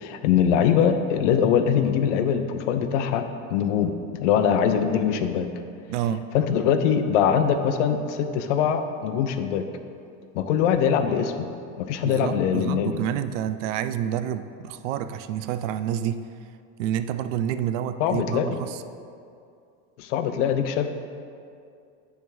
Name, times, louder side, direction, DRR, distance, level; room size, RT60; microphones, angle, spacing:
voice 1, 0.0-3.9 4.2-5.5 6.3-9.6 10.3-11.5 11.8-13.0 18.0-18.6 20.0-20.9, left 8 dB, 85° left, 8 dB, 0.7 m, -22 dB
voice 2, 5.9-6.3 12.0-16.3 16.8-18.8, right 10 dB, 90° right, 11 dB, 0.5 m, -28 dB
9.3 x 3.6 x 6.1 m, 2.4 s
supercardioid pair, 145°, 35 cm